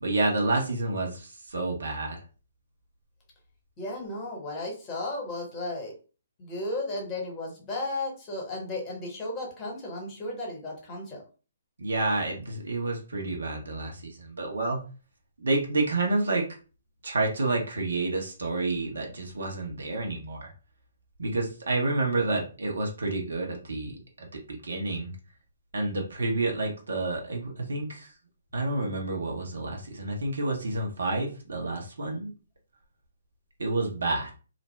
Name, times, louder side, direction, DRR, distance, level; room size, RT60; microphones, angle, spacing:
voice 1, 0.0-2.2 11.8-14.8 15.4-16.5 17.0-20.5 21.2-25.1 25.7-28.1 28.5-32.3 33.6-34.3, right 2 dB, 65° right, 1 dB, 0.9 m, -29 dB
voice 2, 3.8-5.9 6.4-11.2, left 2 dB, 25° left, -1 dB, 1.0 m, -34 dB
2.5 x 2.0 x 3.2 m, 0.35 s
figure-of-eight pair, 130°, 0 cm